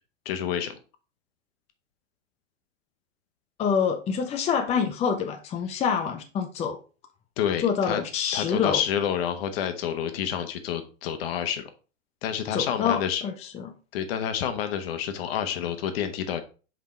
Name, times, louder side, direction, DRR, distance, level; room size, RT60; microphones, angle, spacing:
voice 1, 0.2-0.8 7.4-8.0 8.3-11.7 12.2-13.2 13.9-16.4, left 9 dB, 50° left, 8 dB, 1.2 m, -28 dB
voice 2, 3.6-6.8 7.6-8.8 12.5-13.7, left 7 dB, 15° left, 5 dB, 0.6 m, -26 dB
5.4 x 5.0 x 4.4 m, 0.36 s
hypercardioid pair, 120°, 37 cm